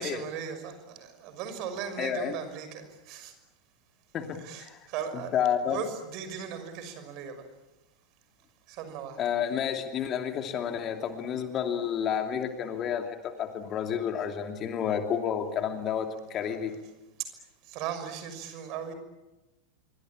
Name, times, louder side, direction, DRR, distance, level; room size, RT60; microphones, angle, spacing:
voice 1, 0.0-3.3 4.4-5.3 5.7-7.4 8.7-9.2 16.4-16.8 17.7-18.9, right 8 dB, 40° right, 9 dB, 6.0 m, -38 dB
voice 2, 2.0-2.4 4.1-4.8 5.3-5.8 9.2-16.7, left 8 dB, 30° left, 5 dB, 2.8 m, -30 dB
27.5 x 24.5 x 8.8 m, 1.0 s
figure-of-eight pair, 90°, 0 cm